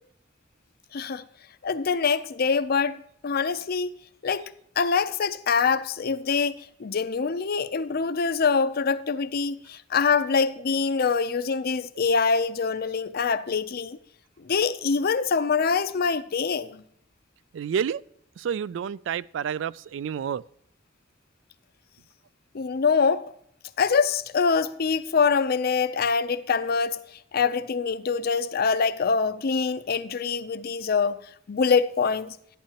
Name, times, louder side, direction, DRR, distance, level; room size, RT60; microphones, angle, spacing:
voice 1, 0.9-1.2 1.6-4.0 4.2-14.0 14.4-16.8 22.5-23.3 23.8-27.0 27.3-32.4, left 5 dB, 55° left, 0.5 m, -24 dB
voice 2, 17.5-18.0 18.4-20.4, right 7 dB, 70° right, 0.3 m, -29 dB
11.5 x 11.0 x 2.9 m
head